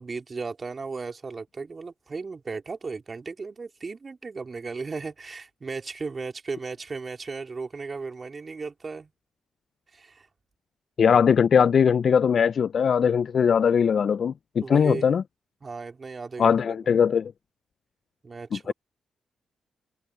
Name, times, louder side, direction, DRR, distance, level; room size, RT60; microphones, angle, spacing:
voice 1, 0.0-9.1 9.9-10.3 14.6-15.1 15.6-16.8 18.2-18.7, right 4 dB, 40° right, 2.9 m, -35 dB
voice 2, 11.0-15.2 16.4-17.3 18.5-18.7, left 7 dB, 60° left, 0.4 m, -20 dB
supercardioid pair, 55°, 0 cm